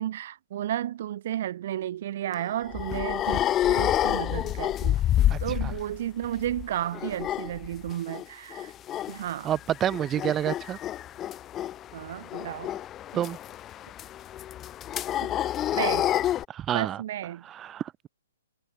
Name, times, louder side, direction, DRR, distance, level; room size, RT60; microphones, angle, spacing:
voice 1, 0.0-8.7 9.1-9.5 11.9-12.8 13.1-13.2 15.2-15.3 15.7-16.1 16.7-17.4, right 12 dB, 45° right, 4.7 m, -33 dB
sound 1, 2.3-6.0 6.2-8.2 8.5-9.2 9.5-16.5, left 12 dB, 15° left, 2.5 m, -28 dB
voice 2, 5.3-5.7 9.4-10.8 13.1-13.4 16.5-17.0 17.4-18.1, right 10 dB, 15° right, 4.2 m, -29 dB
hypercardioid pair, 170°, 0 cm